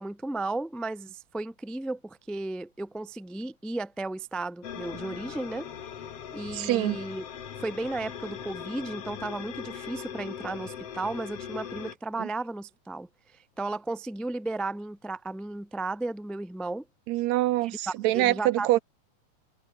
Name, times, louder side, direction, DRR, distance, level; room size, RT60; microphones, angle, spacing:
voice 1, 0.0-5.7 6.3-7.2 7.6-13.1 13.6-16.8 17.6-18.7, right 2 dB, ahead, 0.4 m, -34 dB
sound 1, 4.6-11.9, left 8 dB, 55° left, 2.7 m, -40 dB
voice 2, 6.5-7.0 12.2-12.3 17.1-18.8, right 16 dB, 80° right, 1.8 m, -25 dB
omnidirectional pair, 3.3 m